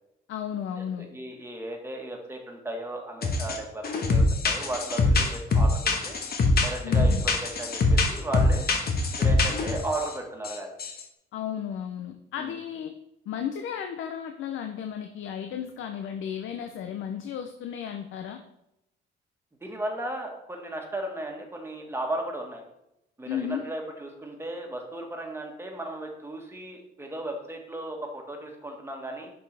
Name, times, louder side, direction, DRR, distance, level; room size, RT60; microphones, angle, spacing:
voice 1, 0.3-1.1 6.8-7.2 11.3-12.9 13.3-18.4 23.3-23.6, left 9 dB, 80° left, 6 dB, 0.6 m, -34 dB
voice 2, 1.0-3.8 4.1-5.8 6.0-6.2 6.6-8.6 9.2-10.8 12.4-12.6 19.6-22.6 23.2-29.3, right 1 dB, 10° right, 1 dB, 1.6 m, -35 dB
sound 1, 3.2-3.6 3.8-10.1 10.4-10.5 10.8-11.0, left 2 dB, 50° left, 1.2 m, -23 dB
6.7 x 5.4 x 3.4 m, 0.84 s
cardioid pair, 90°, 20 cm